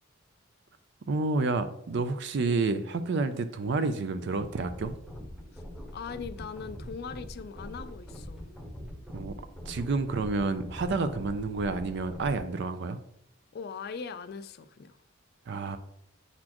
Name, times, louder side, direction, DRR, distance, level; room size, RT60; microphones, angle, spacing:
voice 1, 1.1-4.9 9.1-9.3 9.7-13.0 15.5-15.8, right 3 dB, 60° right, 0.4 m, -29 dB
sound 1, 4.4-12.4, equal, ahead, 0.8 m, -43 dB
voice 2, 5.9-8.5 13.5-15.0, left 5 dB, 50° left, 0.4 m, -40 dB
8.5 x 4.1 x 3.0 m
head